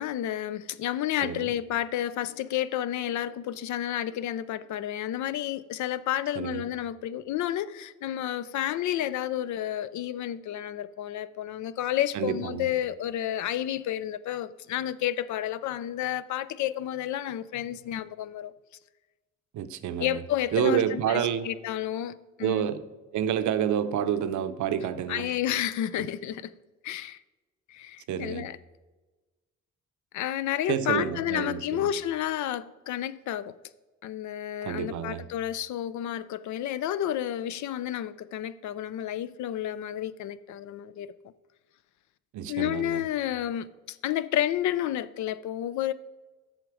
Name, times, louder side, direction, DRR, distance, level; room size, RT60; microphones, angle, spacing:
voice 1, 0.0-18.5 20.0-22.6 25.1-26.5 26.8-27.2 27.7-28.6 30.1-33.5 34.0-41.1 42.5-45.9, left 12 dB, 70° left, 0.5 m, -31 dB
voice 2, 1.2-1.5 6.4-6.6 12.1-12.7 19.5-20.2 20.5-21.5 22.4-22.8 23.1-25.3 26.0-26.1 28.1-28.5 30.7-31.9 34.6-35.2 42.3-43.0, right 9 dB, 70° right, 0.7 m, -29 dB
8.0 x 6.4 x 4.8 m
cardioid pair, 90°, 30 cm